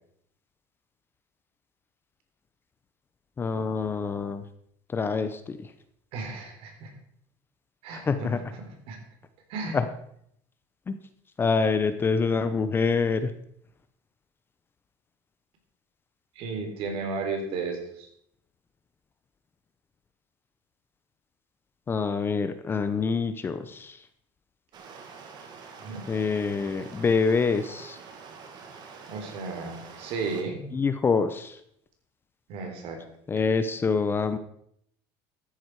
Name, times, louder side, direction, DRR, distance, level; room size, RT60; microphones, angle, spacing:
voice 1, 3.4-4.4 4.9-5.6 7.9-8.4 9.7-9.9 10.9-11.0 11.4-13.3 21.9-24.0 26.1-28.0 30.7-31.6 33.3-34.4, left 5 dB, 20° left, 10 dB, 0.7 m, -26 dB
voice 2, 6.1-6.9 7.8-8.6 8.9-9.0 9.5-9.8 16.4-18.1 25.8-26.0 29.1-30.6 32.5-33.0, right 4 dB, 55° right, 4 dB, 3.6 m, -34 dB
Stream, 24.7-30.4, right 5 dB, 40° right, 2.2 m, -46 dB
13.5 x 10.0 x 4.7 m, 0.69 s
cardioid pair, 145°, 11 cm